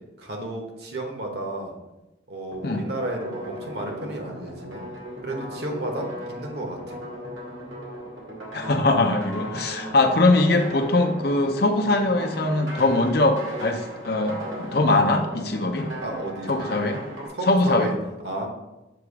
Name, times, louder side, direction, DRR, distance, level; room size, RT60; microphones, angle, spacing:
voice 1, 0.2-1.7 2.3-4.9 5.2-7.0 9.9-10.0 16.0-16.6 17.3-17.9 18.2-18.5, right 1 dB, 55° right, 2 dB, 1.1 m, -32 dB
sound 1, 2.5-17.3, right 1 dB, 85° right, 1.9 m, -37 dB
voice 2, 8.5-15.9 16.5-17.0 17.5-17.9, left 2 dB, 55° left, 4 dB, 0.6 m, -21 dB
6.9 x 3.0 x 4.7 m, 1.0 s
head